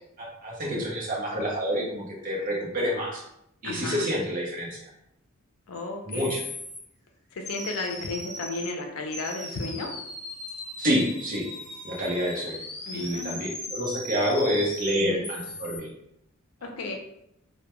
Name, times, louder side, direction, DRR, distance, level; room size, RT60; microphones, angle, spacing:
voice 1, 0.2-3.2 3.6-4.8 6.1-6.4 10.8-11.5 11.8-12.6 12.9-15.9, equal, 40° right, -3 dB, 0.6 m, -28 dB
voice 2, 3.6-4.1 5.7-6.2 7.3-9.9 12.9-13.4 15.0-15.3 16.6-16.9, left 3 dB, 75° left, 2 dB, 0.5 m, -33 dB
sound 1, 5.7-5.8 6.1-6.8 7.5-8.7 9.1-15.8, left 2 dB, 30° left, 0.6 m, -38 dB
2.2 x 2.1 x 2.9 m, 0.80 s
head